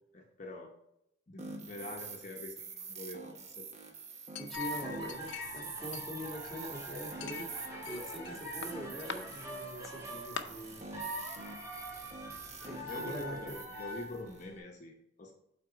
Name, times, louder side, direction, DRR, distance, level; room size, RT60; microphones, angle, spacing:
voice 1, 0.1-0.7 1.3-3.7 12.8-15.3, left 2 dB, 40° left, 0 dB, 0.8 m, -45 dB
sound 1, 1.4-14.4, right 5 dB, 35° right, 0.8 m, -46 dB
Chink clink, 4.3-5.6 5.9-6.7 7.2-8.3 8.6-9.2 9.8-9.9 10.4-10.5, left 7 dB, 70° left, 0.6 m, -43 dB
voice 2, 4.4-7.5 7.9-10.9 12.6-13.4, equal, ahead, -1 dB, 1.6 m, -44 dB
sound 2, 4.5-14.6, equal, 15° right, 2.1 m, -44 dB
8.0 x 4.3 x 4.7 m, 0.82 s
head